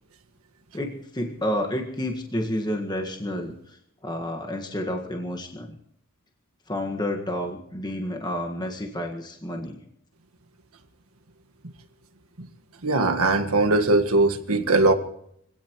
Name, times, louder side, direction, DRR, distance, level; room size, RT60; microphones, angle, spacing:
voice 1, 0.7-5.8 6.7-9.8, left 1 dB, 20° left, 1 dB, 1.8 m, -30 dB
voice 2, 12.8-14.9, right 2 dB, 85° right, 6 dB, 1.7 m, -20 dB
25.0 x 17.5 x 3.1 m, 0.73 s
head